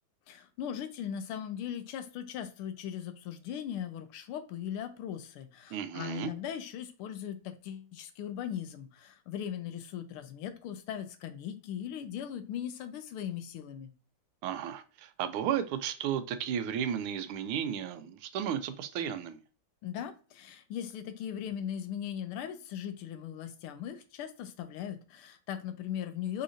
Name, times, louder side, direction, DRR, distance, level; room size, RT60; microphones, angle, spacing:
voice 1, 0.3-13.9 19.8-26.4, left 9 dB, 90° left, 1.6 m, -39 dB
voice 2, 5.7-6.3 14.4-19.4, right 9 dB, 85° right, 1.5 m, -34 dB
4.9 x 3.8 x 2.5 m
omnidirectional pair, 2.3 m